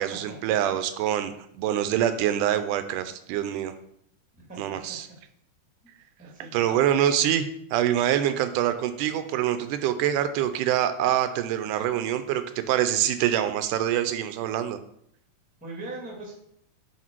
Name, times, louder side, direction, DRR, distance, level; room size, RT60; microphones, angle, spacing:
voice 1, 0.0-3.7 4.6-5.1 6.4-14.8, right 11 dB, 85° right, 10 dB, 2.1 m, -25 dB
voice 2, 4.3-5.0 6.2-7.0 15.6-16.3, right 2 dB, 5° right, -2 dB, 1.0 m, -40 dB
7.3 x 3.7 x 4.5 m, 0.71 s
omnidirectional pair, 3.6 m